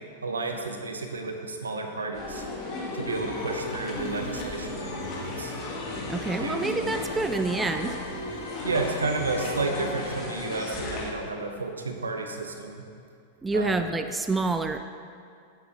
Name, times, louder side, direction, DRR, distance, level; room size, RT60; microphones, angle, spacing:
voice 1, 0.2-2.4 2.9-5.5 6.4-6.7 8.6-12.8 13.5-13.7, right 3 dB, 85° right, 4 dB, 0.8 m, -31 dB
sound 1, 2.1-11.1, left 2 dB, 35° left, 1.5 m, -35 dB
sound 2, 3.0-10.4, left 2 dB, 70° left, 1.2 m, -42 dB
voice 2, 6.1-8.0 13.4-14.8, right 3 dB, 10° right, 8 dB, 0.3 m, -27 dB
8.0 x 6.4 x 4.0 m, 2.3 s
hypercardioid pair, 100°, 0 cm